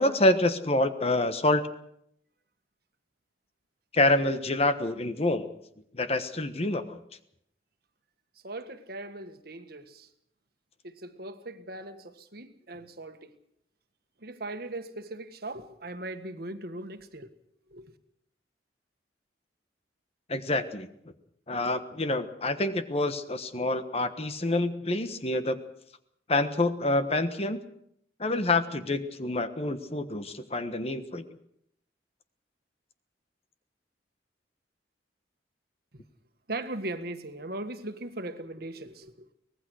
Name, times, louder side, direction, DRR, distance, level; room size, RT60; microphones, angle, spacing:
voice 1, 0.0-1.6 3.9-5.5 5.9-7.0 20.3-20.9 21.5-25.6 26.3-27.6 28.2-31.2, left 2 dB, 35° left, 10 dB, 1.3 m, -27 dB
voice 2, 8.4-10.1 10.8-13.3 14.2-17.3 17.7-17.9 35.9-36.0 36.5-39.3, right 2 dB, 55° right, 9 dB, 1.7 m, -39 dB
24.0 x 19.0 x 6.4 m, 0.73 s
head